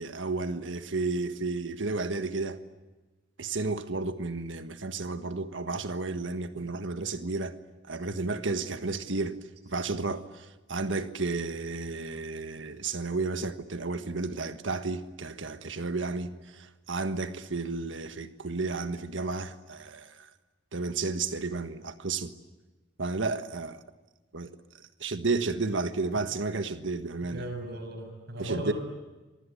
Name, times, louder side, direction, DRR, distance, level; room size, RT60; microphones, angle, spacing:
voice 1, 0.0-2.6 3.4-7.6 7.9-9.4 9.7-20.3 20.7-22.3 23.0-23.8 24.3-24.5 24.8-27.4 28.4-28.7, right 3 dB, 90° right, 1.5 m, -32 dB
voice 2, 27.3-28.7, equal, 60° right, 6.5 m, -37 dB
28.5 x 24.5 x 8.6 m
head